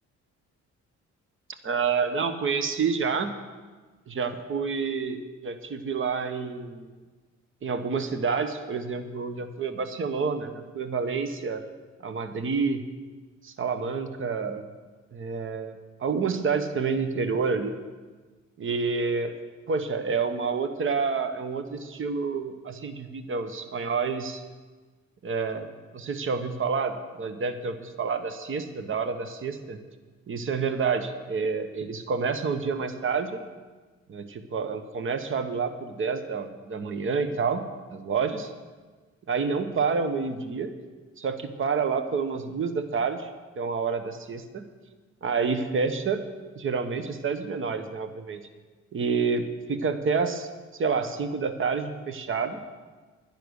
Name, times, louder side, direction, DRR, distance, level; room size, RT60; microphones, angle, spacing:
voice 1, 1.6-3.3 4.1-6.9 7.6-11.6 12.0-12.8 13.4-14.7 15.1-17.7 18.6-19.3 19.7-24.4 25.2-29.8 30.3-33.4 34.1-38.5 39.3-40.7 41.2-43.3 43.6-44.6 45.2-46.2 46.6-48.5 48.9-52.6, right 5 dB, 45° right, 9 dB, 1.1 m, -28 dB
10.5 x 10.0 x 6.5 m, 1.4 s
cardioid pair, 90°, 30 cm